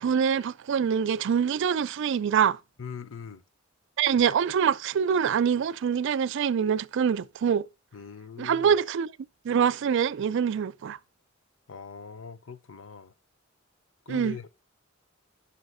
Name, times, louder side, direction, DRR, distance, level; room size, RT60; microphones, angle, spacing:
voice 1, 0.0-2.6 4.0-7.7 8.4-9.1 9.5-11.0 14.1-14.3, right 7 dB, 65° right, 0.3 m, -25 dB
voice 2, 2.8-3.4 7.9-8.7 11.7-13.1 14.1-14.5, left 5 dB, 70° left, 0.6 m, -41 dB
6.3 x 5.6 x 4.8 m
head